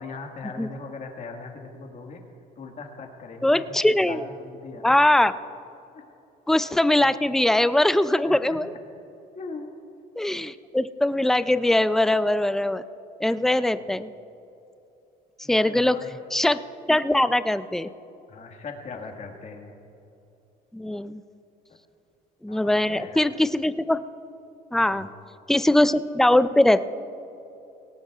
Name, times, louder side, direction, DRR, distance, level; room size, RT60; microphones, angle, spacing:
voice 1, 0.0-2.2 2.6-4.9 5.9-6.0 7.0-7.2 8.2-8.6 9.3-9.7 15.4-16.2 18.3-19.7 21.7-21.8 22.5-23.3 24.7-25.1, left 4 dB, 45° left, 3 dB, 1.8 m, -40 dB
voice 2, 3.4-4.3 4.8-5.4 6.5-8.7 10.2-12.8 13.2-14.1 15.5-16.0 16.3-16.6 16.9-17.9 20.7-21.2 22.4-24.0 24.7-25.1 25.5-26.8, left 1 dB, ahead, 13 dB, 0.4 m, -21 dB
19.5 x 17.5 x 2.4 m, 2.9 s
cardioid pair, 110°, 17 cm